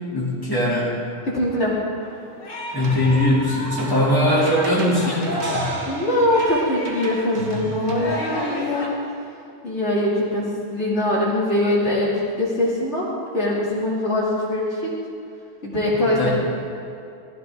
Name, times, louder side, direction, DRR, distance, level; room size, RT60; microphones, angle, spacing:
voice 1, 0.1-1.0 2.7-5.7 16.2-16.3, left 1 dB, 15° left, -6 dB, 2.7 m, -21 dB
voice 2, 1.3-1.7 5.9-8.9 9.6-14.9 15.6-16.3, left 1 dB, 60° left, -6 dB, 2.8 m, -22 dB
Singing, 2.0-8.9, left 1 dB, 85° left, 2.5 m, -31 dB
sound 1, 2.8-8.0, right 3 dB, 85° right, 1.5 m, -35 dB
16.0 x 14.0 x 3.6 m, 2.6 s
omnidirectional pair, 1.3 m